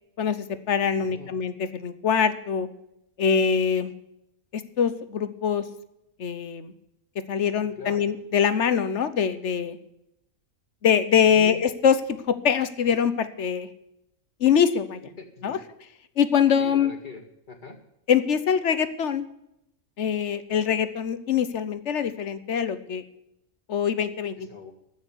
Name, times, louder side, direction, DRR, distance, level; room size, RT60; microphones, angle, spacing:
voice 1, 0.2-2.7 3.2-3.9 4.5-5.6 6.2-6.7 7.3-9.8 10.8-12.0 12.3-13.7 14.4-15.0 15.4-15.6 16.2-16.9 18.1-19.3 20.0-23.0 23.7-24.3, left 7 dB, 60° left, 12 dB, 1.2 m, -23 dB
voice 2, 0.9-1.3 7.8-8.1 11.2-11.6 15.2-15.6 16.6-17.8 24.4-24.7, left 4 dB, 35° left, 3 dB, 2.1 m, -41 dB
15.0 x 6.4 x 9.7 m, 0.83 s
omnidirectional pair, 1.4 m